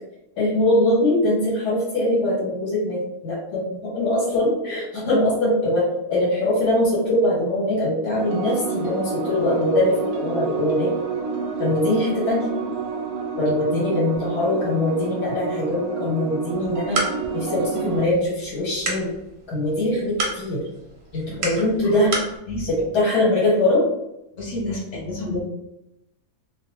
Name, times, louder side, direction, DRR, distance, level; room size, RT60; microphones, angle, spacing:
voice 1, 0.4-10.9 11.6-12.5 13.4-17.0 17.3-19.1 19.5-20.6 21.1-22.1 22.7-23.8, left 1 dB, 85° left, -9 dB, 1.9 m, -22 dB
sound 1, 8.2-18.1, right 5 dB, 85° right, 0.5 m, -29 dB
sound 2, 16.5-22.4, right 2 dB, 45° right, 0.7 m, -31 dB
voice 2, 24.4-25.4, left 1 dB, 45° left, -3 dB, 1.0 m, -29 dB
3.1 x 2.5 x 3.0 m, 0.88 s
omnidirectional pair, 1.7 m